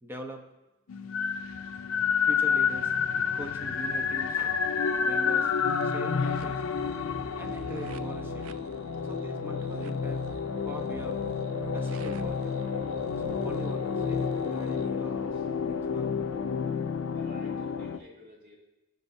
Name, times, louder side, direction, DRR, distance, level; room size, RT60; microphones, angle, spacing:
voice 1, 0.0-0.4 2.2-2.9 3.3-4.6 5.0-5.5 5.8-6.6 7.4-8.5 9.0-10.2 10.6-11.2 11.7-12.5 13.1-16.2, equal, 10° right, 3 dB, 0.8 m, -42 dB
sound 1, 0.9-18.0, left 6 dB, 80° left, 0.5 m, -30 dB
sound 2, 5.4-14.9, right 5 dB, 90° right, 0.4 m, -43 dB
voice 2, 16.6-18.6, equal, 45° right, -4 dB, 2.4 m, -53 dB
15.5 x 5.4 x 2.7 m, 1.0 s
head